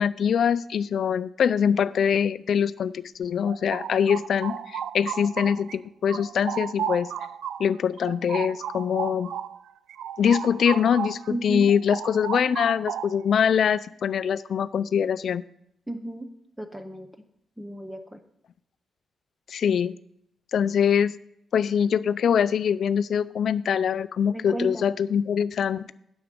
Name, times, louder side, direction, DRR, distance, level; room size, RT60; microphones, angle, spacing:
voice 1, 0.0-7.1 7.6-9.3 10.2-15.4 19.5-20.0 20.5-21.1 21.5-25.9, left 7 dB, 50° left, 16 dB, 0.4 m, -23 dB
sound 1, 3.2-5.8 6.1-11.3 11.6-13.3, right 9 dB, 75° right, 0.3 m, -34 dB
voice 2, 11.3-11.7 15.9-16.3 16.6-17.1 17.6-18.2 24.3-24.8, right 1 dB, 5° right, 7 dB, 0.5 m, -33 dB
9.7 x 7.2 x 5.2 m, 0.76 s
wide cardioid pair, 175°, 0 cm